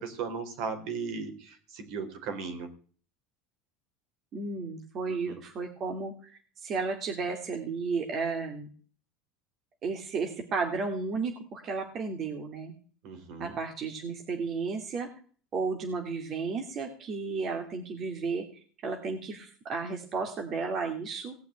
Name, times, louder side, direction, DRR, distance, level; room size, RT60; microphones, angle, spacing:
voice 1, 0.0-2.7 5.1-5.4 13.0-13.5, right 5 dB, 60° right, 7 dB, 3.9 m, -37 dB
voice 2, 4.3-8.7 9.8-12.7 13.4-15.1 15.5-21.3, right 4 dB, 35° right, 3 dB, 2.4 m, -33 dB
17.5 x 5.9 x 9.8 m, 0.43 s
supercardioid pair, 135°, 0 cm